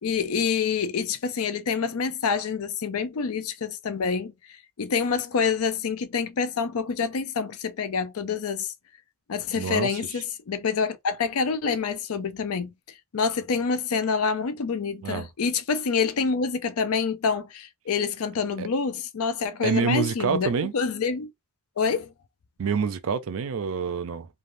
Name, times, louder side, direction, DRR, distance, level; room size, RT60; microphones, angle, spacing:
voice 1, 0.0-4.3 4.8-8.7 9.3-12.7 13.1-21.3 21.8-22.1, left 5 dB, 75° left, 0.5 m, -27 dB
voice 2, 9.6-9.9 15.0-15.3 18.6-18.7 19.6-20.7 22.6-24.3, right 5 dB, 65° right, 0.4 m, -26 dB
3.3 x 2.3 x 2.5 m
head